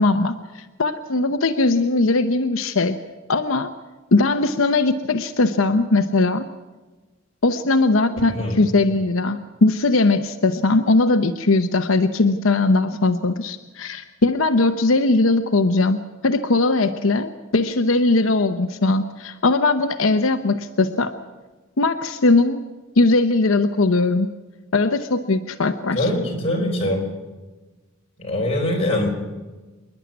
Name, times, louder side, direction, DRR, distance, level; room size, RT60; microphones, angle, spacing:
voice 1, 0.0-3.0 3.3-3.7 4.1-6.5 7.4-21.1 21.8-22.7 23.0-24.3 24.7-26.1, left 3 dB, 85° left, 8 dB, 0.8 m, -19 dB
voice 2, 8.3-8.6 25.9-27.1 28.2-29.1, left 1 dB, 30° left, -1 dB, 4.7 m, -23 dB
27.0 x 11.0 x 9.4 m, 1.2 s
head